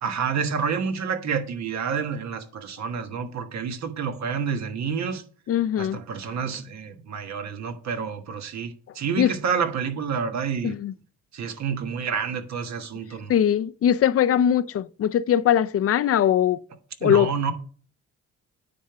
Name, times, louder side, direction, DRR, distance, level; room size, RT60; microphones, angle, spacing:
voice 1, 0.0-5.2 5.8-10.7 11.3-13.3 17.0-17.5, right 6 dB, 65° right, 1.4 m, -29 dB
voice 2, 5.5-6.0 9.2-9.3 10.6-10.9 13.3-16.6 17.0-17.3, left 10 dB, 50° left, 0.6 m, -21 dB
9.5 x 3.5 x 6.9 m
cardioid pair, 90°, 30 cm